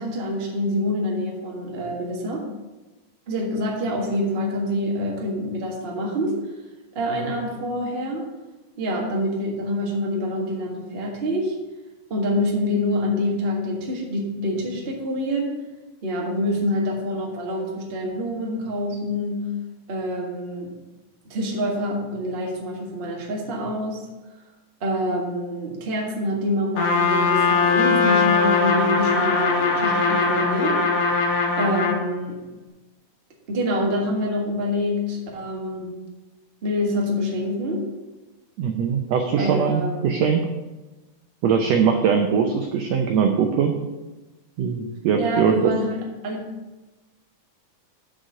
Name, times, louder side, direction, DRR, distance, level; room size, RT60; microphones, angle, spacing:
voice 1, 0.0-2.4 3.3-6.3 6.9-8.2 8.8-11.6 12.1-15.5 16.0-19.5 19.9-20.7 21.2-24.0 24.8-32.4 33.5-35.9 36.6-37.8 39.4-40.0 45.2-46.4, left 1 dB, 40° right, -1 dB, 0.8 m, -26 dB
Trumpet, 26.8-32.0, left 4 dB, 75° left, 2.6 m, -20 dB
voice 2, 38.6-40.5 41.4-43.7 44.6-45.8, right 6 dB, 80° right, 4 dB, 1.5 m, -21 dB
6.4 x 6.3 x 6.6 m, 1.1 s
omnidirectional pair, 3.8 m